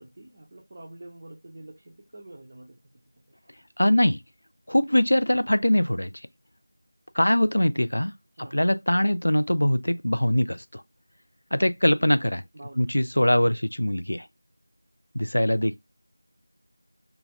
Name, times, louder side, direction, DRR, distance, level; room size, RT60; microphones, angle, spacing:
voice 1, 0.0-1.8 2.1-2.8 8.4-8.6 12.5-13.0, right 1 dB, 30° right, 0.5 m, -45 dB
voice 2, 3.8-4.2 4.7-6.1 7.1-8.1 8.5-10.8 11.5-12.4 12.8-14.3 15.1-15.8, left 1 dB, 65° left, 0.3 m, -22 dB
2.3 x 2.2 x 3.2 m
figure-of-eight pair, 170°, 0 cm